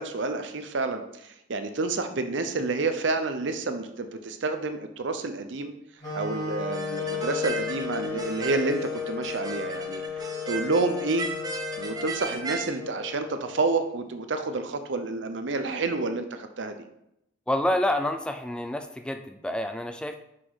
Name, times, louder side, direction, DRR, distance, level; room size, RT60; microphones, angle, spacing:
voice 1, 0.0-5.7 6.1-11.3 11.8-16.8, right 3 dB, 70° right, 8 dB, 0.6 m, -29 dB
sound 1, 6.0-14.0, left 6 dB, 20° left, 2.0 m, -35 dB
sound 2, 6.7-12.7, right 4 dB, 20° right, 0.7 m, -36 dB
voice 2, 17.5-20.2, left 1 dB, 5° left, 7 dB, 0.3 m, -28 dB
5.9 x 4.8 x 4.0 m, 0.80 s
head